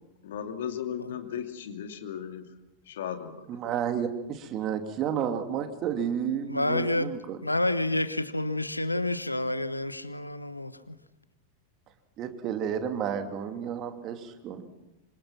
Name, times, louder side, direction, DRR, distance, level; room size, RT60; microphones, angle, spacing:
voice 1, 0.2-2.4 2.9-3.4, left 9 dB, 60° left, 6 dB, 2.7 m, -36 dB
voice 2, 3.5-7.4 12.2-14.7, right 8 dB, 35° right, 6 dB, 2.8 m, -31 dB
voice 3, 6.5-7.1 7.4-10.9, left 1 dB, 85° left, 13 dB, 1.1 m, -29 dB
27.0 x 25.5 x 6.0 m, 0.95 s
figure-of-eight pair, 90°, 0 cm